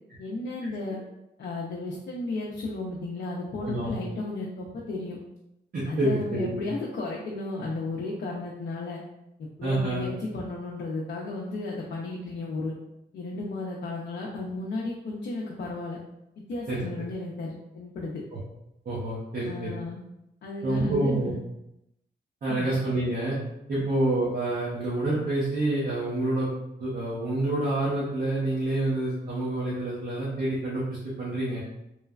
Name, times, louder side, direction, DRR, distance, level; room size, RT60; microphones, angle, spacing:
voice 1, 0.2-1.0 1.4-5.2 5.8-9.0 9.4-12.7 13.1-16.0 16.5-18.2 19.5-20.0 20.4-21.4 22.5-22.7, left 2 dB, 70° left, -3 dB, 0.5 m, -34 dB
voice 2, 3.6-3.9 5.7-6.5 9.6-10.1 16.7-17.1 18.3-18.4 18.9-19.7 20.6-21.3 22.4-23.4 23.7-26.5 26.8-31.6, right 2 dB, 55° right, -7 dB, 0.7 m, -27 dB
3.1 x 2.1 x 2.3 m, 0.87 s
wide cardioid pair, 115°, 18 cm